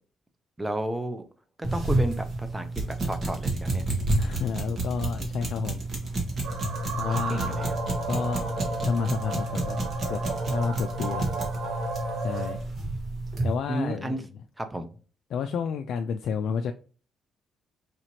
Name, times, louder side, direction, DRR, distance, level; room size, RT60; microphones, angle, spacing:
voice 1, 0.6-1.2 1.6-3.8 6.8-7.8 13.7-14.2 14.6-14.9, right 1 dB, 15° right, 0.6 m, -33 dB
sound 1, 1.6-13.5, right 2 dB, 45° right, 1.5 m, -30 dB
voice 2, 4.1-5.8 6.9-7.6 8.1-9.8 10.1-10.2 10.5-11.3 12.2-12.6 13.4-14.3 15.3-16.7, left 6 dB, 70° left, 0.3 m, -30 dB
sound 2, 6.4-12.6, right 1 dB, 85° right, 1.0 m, -32 dB
4.8 x 3.0 x 2.8 m
cardioid pair, 90°, 0 cm